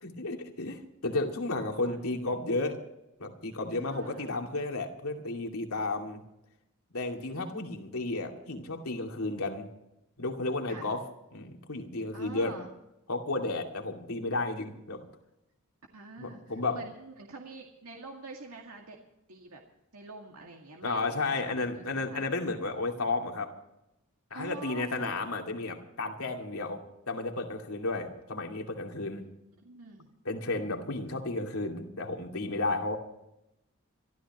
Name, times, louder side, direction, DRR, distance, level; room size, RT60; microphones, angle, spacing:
voice 1, 0.0-2.8 3.2-6.2 6.9-9.7 10.2-11.0 11.3-12.6 13.1-15.0 16.2-16.8 20.8-23.5 24.3-29.2 30.2-33.0, left 2 dB, 85° left, 2 dB, 2.5 m, -33 dB
voice 2, 3.7-4.3 7.2-7.6 10.7-10.9 12.1-12.7 15.9-19.0 19.3-19.6 19.9-22.2 24.3-25.2 29.6-30.1, right 3 dB, 90° right, 1 dB, 2.1 m, -46 dB
26.0 x 13.5 x 3.0 m, 0.87 s
head